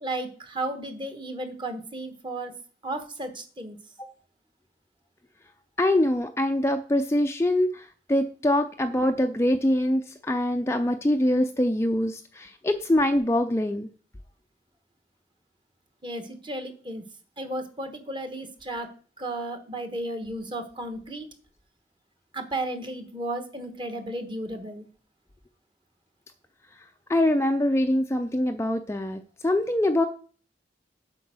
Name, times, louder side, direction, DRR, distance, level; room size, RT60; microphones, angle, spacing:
voice 1, 0.0-2.5 2.8-3.8 16.0-17.0 17.4-18.9 19.2-21.3 22.3-24.8, right 1 dB, 25° right, 7 dB, 1.1 m, -34 dB
voice 2, 5.8-13.9 27.1-30.1, left 1 dB, 15° left, 5 dB, 0.4 m, -24 dB
8.0 x 5.2 x 6.2 m, 0.42 s
head